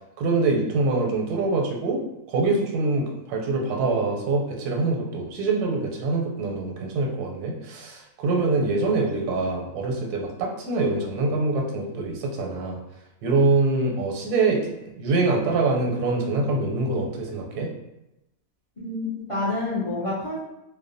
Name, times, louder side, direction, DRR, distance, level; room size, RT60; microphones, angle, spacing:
voice 1, 0.2-2.0 2.3-12.8 13.2-17.7, right 3 dB, 85° right, 0 dB, 1.1 m, -24 dB
voice 2, 18.8-20.4, left 2 dB, 50° left, -9 dB, 0.4 m, -28 dB
2.6 x 2.1 x 2.5 m, 0.91 s
omnidirectional pair, 1.6 m